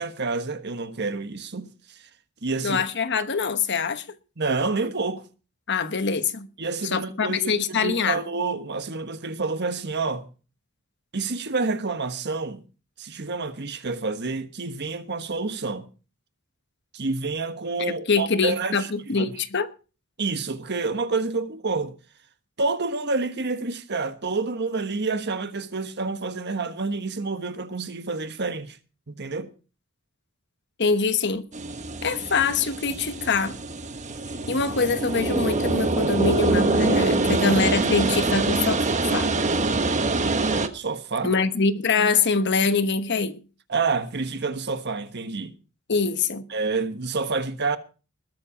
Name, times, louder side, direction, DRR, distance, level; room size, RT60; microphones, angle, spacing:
voice 1, 0.0-2.1 2.4-2.8 4.4-5.2 6.6-10.3 11.1-12.6 13.0-15.9 16.9-19.4 20.2-21.9 22.6-28.8 29.1-29.5 40.7-41.3 43.7-45.6 46.5-47.8, right 3 dB, 55° right, 1.3 m, -28 dB
voice 2, 2.6-4.0 5.7-6.5 6.9-8.2 18.1-19.7 30.8-31.5 32.0-33.5 34.5-39.3 41.2-43.4 45.9-46.4, left 5 dB, 55° left, 1.1 m, -24 dB
sound 1, 31.5-40.7, right 3 dB, 35° right, 1.2 m, -24 dB
20.5 x 7.3 x 5.1 m
head